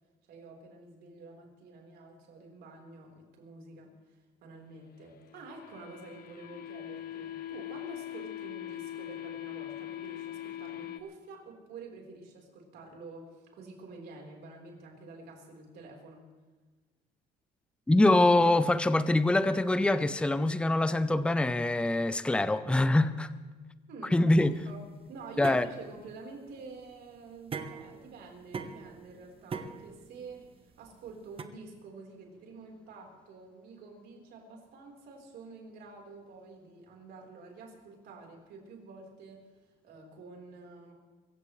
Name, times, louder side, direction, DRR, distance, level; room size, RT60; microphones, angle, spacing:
voice 1, 0.3-16.3 23.9-39.4 39.8-40.9, right 3 dB, 75° right, 4.2 m, -48 dB
sound 1, 5.0-11.0, left 12 dB, 65° left, 1.2 m, -41 dB
voice 2, 17.9-23.3 24.1-24.5 25.4-25.6, left 2 dB, 5° left, 0.6 m, -24 dB
sound 2, 24.4-31.4, right 5 dB, 35° right, 1.0 m, -43 dB
24.5 x 15.5 x 3.3 m
cardioid pair, 110°, 17 cm